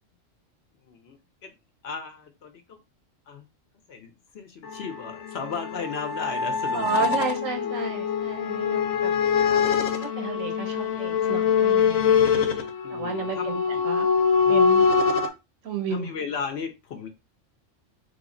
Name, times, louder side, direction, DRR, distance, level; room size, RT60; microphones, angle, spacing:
voice 1, 0.8-1.5 1.8-2.8 3.3-3.4 3.9-7.2 7.6-8.0 12.8-13.9 14.4-14.6 15.9-17.1, left 5 dB, 60° left, 6 dB, 0.8 m, -36 dB
sound 1, 4.6-15.3, left 6 dB, 85° left, 1.0 m, -24 dB
voice 2, 6.7-9.1 9.4-9.6 10.0-12.0 12.9-14.1 14.5-14.9 15.6-16.1, right 5 dB, 85° right, 6 dB, 1.2 m, -32 dB
3.4 x 2.0 x 3.7 m, 0.25 s
omnidirectional pair, 1.4 m